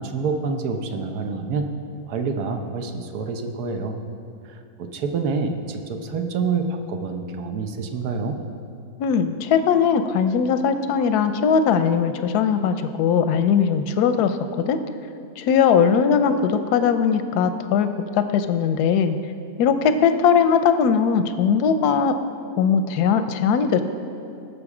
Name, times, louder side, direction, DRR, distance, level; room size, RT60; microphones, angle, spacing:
voice 1, 0.0-1.7 2.0-4.0 4.4-8.4, right 4 dB, 80° right, 5 dB, 1.4 m, -27 dB
voice 2, 9.0-14.8 15.4-17.9 18.1-19.2 19.6-22.2 22.5-23.8, left 6 dB, 85° left, 9 dB, 1.2 m, -20 dB
18.5 x 6.8 x 4.9 m, 2.5 s
omnidirectional pair, 1.6 m